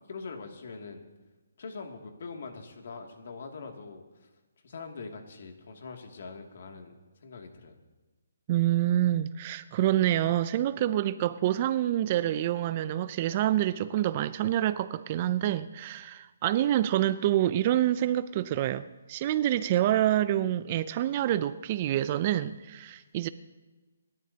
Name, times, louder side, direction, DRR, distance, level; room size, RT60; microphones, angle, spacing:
voice 1, 0.1-1.1 1.6-4.0 4.6-6.9 7.2-7.8, left 4 dB, 55° left, 2.4 m, -42 dB
voice 2, 8.5-23.3, right 12 dB, 25° right, 0.4 m, -27 dB
28.0 x 13.0 x 2.8 m
hypercardioid pair, 165°, 0 cm